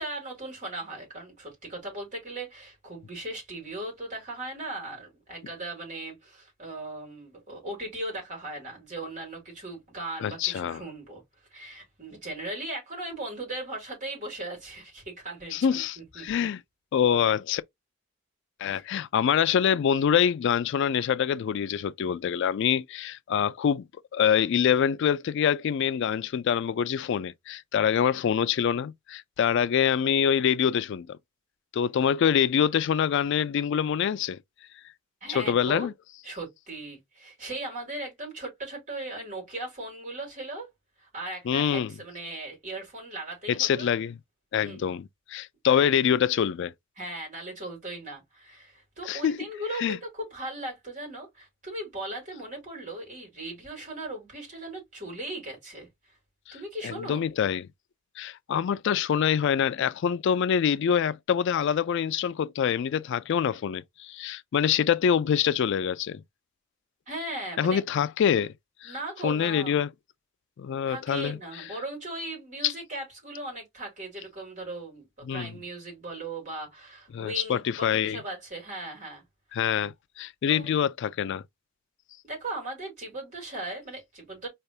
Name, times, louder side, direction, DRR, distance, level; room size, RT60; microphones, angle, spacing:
voice 1, 0.0-11.2 11.5-16.5 18.7-18.9 35.2-35.9 36.2-40.7 41.0-43.9 44.6-44.9 45.7-45.9 47.0-55.9 56.5-57.2 67.1-67.8 68.8-69.8 70.9-75.1 75.3-79.2 79.5-79.6 80.5-80.7 82.2-84.5, right 2 dB, 40° right, 3.4 m, -38 dB
voice 2, 10.2-10.8 15.5-16.6 16.9-17.6 18.6-23.8 24.1-31.2 31.7-34.4 35.3-35.9 41.5-41.9 43.5-44.2 44.5-46.7 49.1-49.4 49.8-50.0 56.5-56.6 56.8-57.7 58.2-66.2 67.6-68.5 68.8-68.9 69.2-69.9 70.6-71.6 72.6-72.7 75.3-75.5 77.1-78.2 79.5-81.4, left 8 dB, 60° left, 0.3 m, -25 dB
4.8 x 3.3 x 2.7 m
head